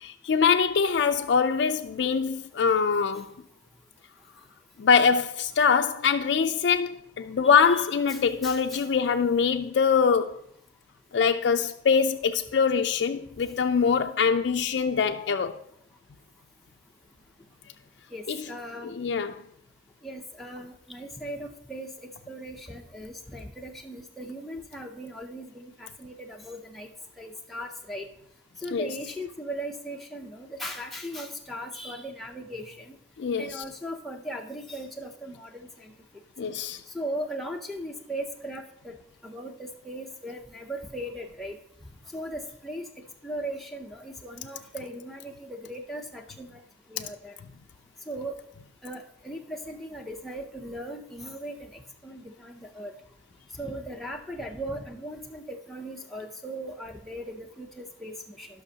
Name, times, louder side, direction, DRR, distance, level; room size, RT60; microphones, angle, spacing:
voice 1, 0.0-3.3 4.8-10.4 11.1-15.6 18.3-18.4 18.9-19.4 28.7-28.9 33.2-33.6 36.4-36.8, left 6 dB, 70° left, 0.4 m, -23 dB
voice 2, 8.1-8.8 18.1-18.9 20.0-21.9 22.3-26.9 27.2-28.0 28.6-32.9 33.4-35.9 36.9-38.9 39.2-41.6 42.1-42.8 43.2-46.6 46.9-47.3 48.1-48.4 48.8-51.7 52.0-52.9 53.6-58.5, right 1 dB, ahead, 0.6 m, -38 dB
17.5 x 5.9 x 2.8 m
head